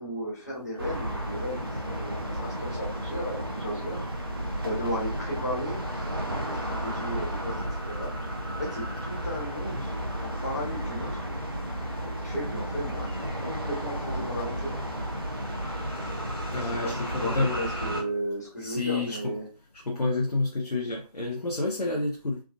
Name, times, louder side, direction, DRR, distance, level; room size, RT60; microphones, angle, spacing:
voice 1, 0.0-4.0 4.6-5.8 6.3-8.1 8.6-9.9 10.2-11.3 11.9-13.1 13.4-14.8 16.5-19.4, equal, 25° left, 1.1 m, -35 dB
sound 1, 0.8-18.0, equal, 35° right, 0.6 m, -33 dB
voice 2, 16.5-17.6 18.6-19.3 19.9-22.4, left 3 dB, 70° left, 0.8 m, -29 dB
3.5 x 2.3 x 2.4 m
figure-of-eight pair, 170°, 20 cm